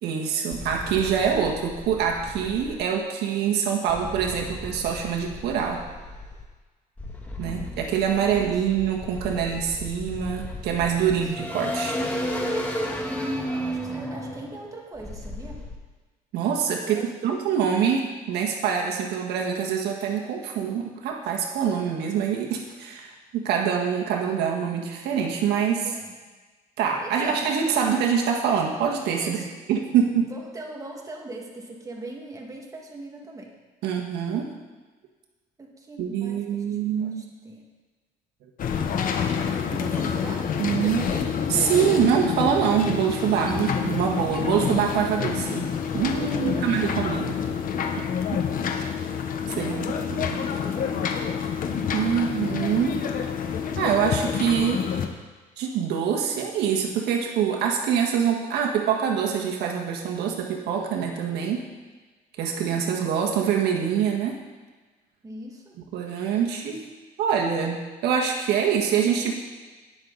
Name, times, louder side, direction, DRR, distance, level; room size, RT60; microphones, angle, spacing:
voice 1, 0.0-5.8 7.4-11.9 16.3-25.9 26.8-29.4 29.7-30.3 33.8-34.6 36.0-37.2 39.2-39.4 40.6-41.0 41.5-47.4 48.0-48.1 48.3-48.4 49.6-50.4 51.9-53.1 53.8-54.9 55.6-61.6 62.4-64.4 65.9-66.8 67.2-69.3, right 7 dB, 80° right, 1 dB, 1.6 m, -25 dB
sound 1, 0.5-2.8 3.9-6.4 7.0-15.7, equal, 10° left, 1.8 m, -33 dB
voice 2, 7.4-8.6 11.1-11.3 13.3-15.6 16.8-17.1 25.8-26.2 27.0-27.8 29.2-29.5 30.3-33.5 35.6-37.6 39.7-40.5 40.8-41.2 46.3-47.3 49.5-51.1 65.2-65.8, right 2 dB, 20° right, -1 dB, 2.1 m, -41 dB
sound 2, 38.6-55.1, left 7 dB, 55° left, 1.2 m, -28 dB
19.5 x 6.5 x 4.0 m, 1.3 s
cardioid pair, 110°, 17 cm